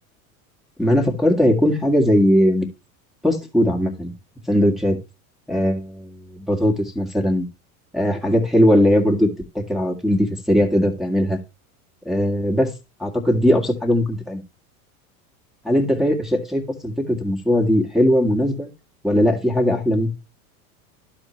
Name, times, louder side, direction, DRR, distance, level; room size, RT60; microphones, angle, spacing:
voice 1, 0.8-2.7 3.2-4.1 4.5-5.0 5.5-7.5 7.9-9.3 9.7-11.4 12.1-12.7 13.0-14.4 15.6-18.7 19.0-20.1, equal, ahead, 0 dB, 1.7 m, -19 dB
12.5 x 4.4 x 3.1 m, 0.26 s
hypercardioid pair, 90°, 44 cm